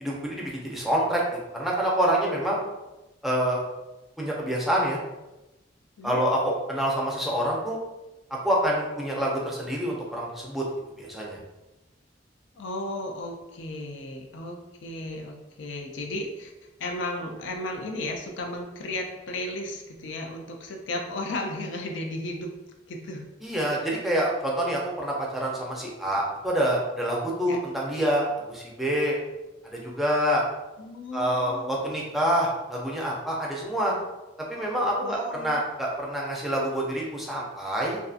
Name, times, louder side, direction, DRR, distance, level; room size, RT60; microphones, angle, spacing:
voice 1, 0.0-1.2 1.5-2.6 3.2-3.6 4.2-5.0 6.0-7.8 8.4-10.6 11.0-11.4 23.4-29.2 29.7-30.4 31.1-33.9 34.5-38.0, equal, ahead, -4 dB, 0.5 m, -26 dB
voice 2, 12.6-16.5 16.8-22.6 22.9-23.2 27.4-27.6 30.8-31.7 35.0-35.6, left 1 dB, 75° left, 2 dB, 0.4 m, -34 dB
2.5 x 2.4 x 2.4 m, 1.0 s
head